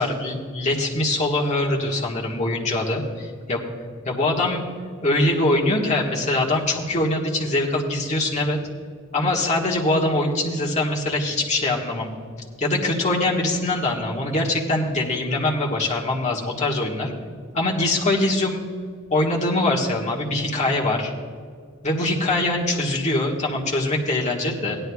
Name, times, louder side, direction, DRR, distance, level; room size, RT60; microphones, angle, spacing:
voice 1, 0.0-3.6 4.0-4.6 5.0-8.6 9.1-12.1 12.6-17.1 17.5-18.6 19.1-21.1 21.8-24.8, left 2 dB, 35° left, -2 dB, 1.5 m, -23 dB
17.0 x 11.0 x 2.3 m, 2.1 s
head